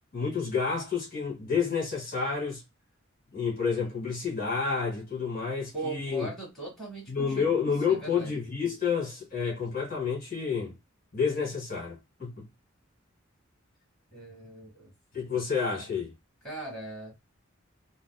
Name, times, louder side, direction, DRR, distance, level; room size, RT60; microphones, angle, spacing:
voice 1, 0.1-2.6 3.3-6.3 7.1-10.7 11.1-12.4 15.1-16.1, left 5 dB, 40° left, 1.6 m, -29 dB
voice 2, 5.7-7.5 7.9-8.3 14.1-14.9 16.4-17.1, right 2 dB, ahead, 1.8 m, -39 dB
4.9 x 2.0 x 2.2 m
head